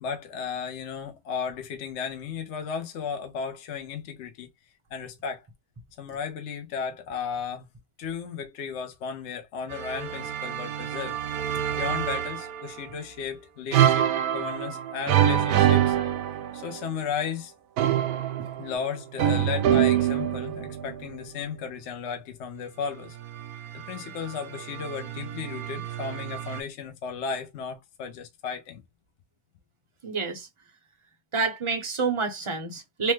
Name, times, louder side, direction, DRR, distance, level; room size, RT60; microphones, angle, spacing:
voice 1, 0.0-4.5 4.9-5.5 6.0-7.7 8.0-11.2 11.8-16.0 16.5-17.5 18.6-23.2 23.7-28.8, left 6 dB, 60° left, 0.8 m, -34 dB
sound 1, 9.7-12.8 13.7-16.9 17.8-21.2 23.2-26.6, right 10 dB, 80° right, 1.0 m, -26 dB
voice 2, 30.0-30.5 31.3-33.1, right 4 dB, 30° right, 0.5 m, -28 dB
3.1 x 2.1 x 3.1 m
omnidirectional pair, 1.5 m